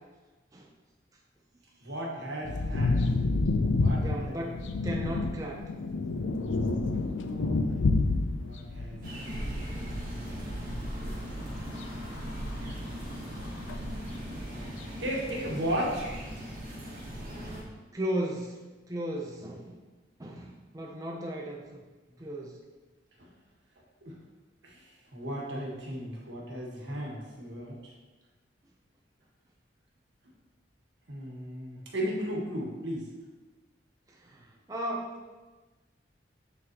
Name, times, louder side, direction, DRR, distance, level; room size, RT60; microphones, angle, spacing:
voice 1, 1.8-3.0 3.8-4.4 7.2-7.7 8.4-9.6 10.3-10.7 11.0-11.3 12.6-13.1 15.0-16.1 23.2-23.3 24.0-24.2 24.6-27.9 31.1-33.1, equal, 75° right, -2 dB, 1.5 m, -36 dB
sound 1, 2.4-9.3 9.8-9.9 11.5-12.5 13.7-13.8, left 3 dB, 85° left, 0.5 m, -28 dB
voice 2, 2.4-3.1 4.0-5.6 17.4-17.5 17.9-18.6 18.9-19.8 20.2-21.8 22.2-22.6 34.1-35.4, right 1 dB, 20° right, -2 dB, 0.5 m, -36 dB
sound 2, 9.0-17.6, equal, 50° right, 1.6 m, -38 dB
9.3 x 4.0 x 2.9 m, 1.2 s
head